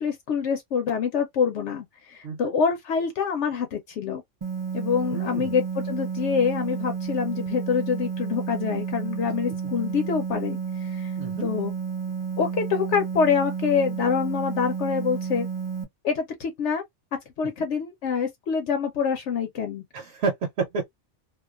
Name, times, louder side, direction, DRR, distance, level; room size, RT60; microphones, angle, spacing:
voice 1, 0.0-4.2 4.7-11.1 11.4-11.7 12.4-15.5 16.0-16.8 17.4-19.8, left 6 dB, 75° left, 0.9 m, -26 dB
sound 1, 4.4-15.8, right 6 dB, 40° right, 0.5 m, -31 dB
voice 2, 5.1-5.5 11.2-11.5 19.9-20.9, right 4 dB, 70° right, 1.0 m, -29 dB
2.4 x 2.3 x 2.3 m
omnidirectional pair, 1.2 m